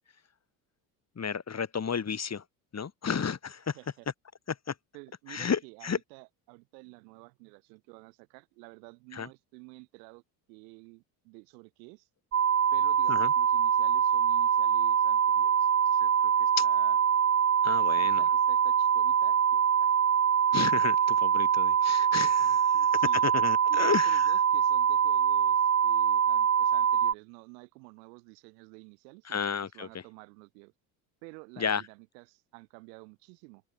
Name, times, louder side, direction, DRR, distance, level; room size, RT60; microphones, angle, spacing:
voice 1, 1.2-2.4 2.7-3.8 4.5-4.6 5.3-6.0 9.1-9.3 13.1-13.3 16.6-16.7 17.6-18.2 20.5-22.7 23.2-24.2 29.3-29.9 31.6-31.8, left 6 dB, 30° left, 3.8 m, -32 dB
voice 2, 3.7-4.1 4.9-10.2 10.5-12.1 12.7-17.0 17.8-20.0 22.3-23.2 23.7-30.7 31.2-33.6, right 31 dB, 80° right, 5.2 m, -51 dB
sound 1, 12.3-27.1, right 8 dB, 30° right, 1.2 m, -24 dB
open air
hypercardioid pair, 70°, 49 cm